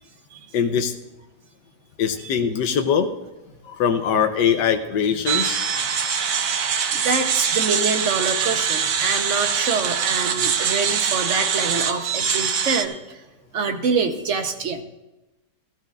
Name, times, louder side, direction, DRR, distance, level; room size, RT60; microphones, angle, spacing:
voice 1, 0.5-0.9 2.0-3.1 3.6-5.6, left 7 dB, 80° left, 6 dB, 1.4 m, -22 dB
sound 1, 5.3-12.8, right 7 dB, 75° right, 1.4 m, -23 dB
voice 2, 6.9-13.2 13.5-14.8, right 5 dB, 50° right, 6 dB, 1.1 m, -25 dB
18.0 x 13.5 x 2.5 m, 1.0 s
omnidirectional pair, 1.9 m